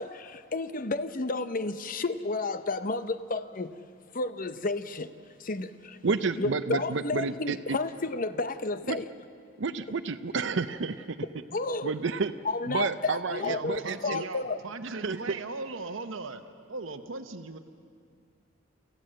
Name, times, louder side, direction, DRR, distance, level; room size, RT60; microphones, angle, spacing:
voice 1, 0.0-3.7 4.1-5.1 5.4-6.0 6.4-9.1 11.5-11.9 12.4-14.6, left 3 dB, 45° left, 0.8 m, -31 dB
voice 2, 6.0-7.8 8.9-9.0 9.6-11.2 11.8-12.3 12.7-14.2 14.8-15.4, right 4 dB, 65° right, 0.6 m, -30 dB
voice 3, 13.4-16.4 16.7-17.6, right 3 dB, 90° right, 1.0 m, -38 dB
28.5 x 15.0 x 7.7 m
head